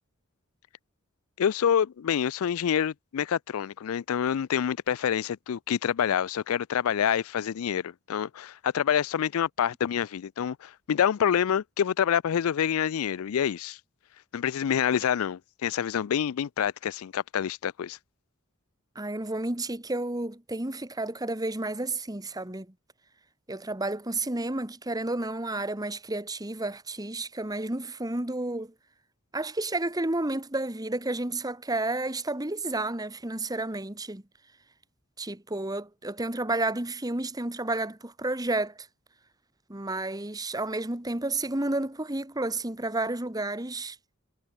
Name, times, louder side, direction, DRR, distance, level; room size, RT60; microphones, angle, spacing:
voice 1, 1.4-13.8 14.3-18.0, left 8 dB, 80° left, 0.4 m, -27 dB
voice 2, 18.9-22.7 23.5-28.7 29.3-34.2 35.2-38.9 39.7-44.0, right 2 dB, 15° right, 1.5 m, -31 dB
head